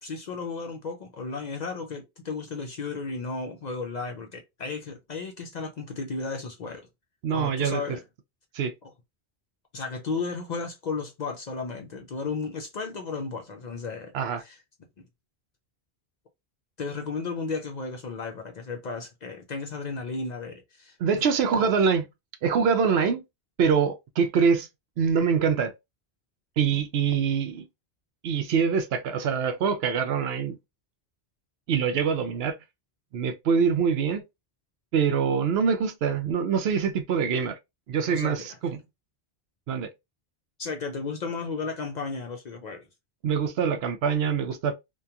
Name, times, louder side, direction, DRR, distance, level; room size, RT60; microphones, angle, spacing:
voice 1, 0.0-6.9 7.3-8.0 8.8-8.9 9.7-14.1 14.4-14.6 16.8-21.3 21.6-21.7 38.1-38.5 40.6-42.9, left 4 dB, 55° left, 0.5 m, -34 dB
voice 2, 7.2-7.8 8.5-8.7 14.1-14.4 21.0-22.1 22.4-23.2 23.6-24.7 25.0-25.7 26.6-27.6 28.2-30.6 31.7-32.6 33.1-34.2 34.9-37.6 37.9-38.8 39.7-39.9 43.2-44.7, right 6 dB, 75° right, 0.8 m, -24 dB
2.8 x 2.2 x 2.3 m
omnidirectional pair, 1.1 m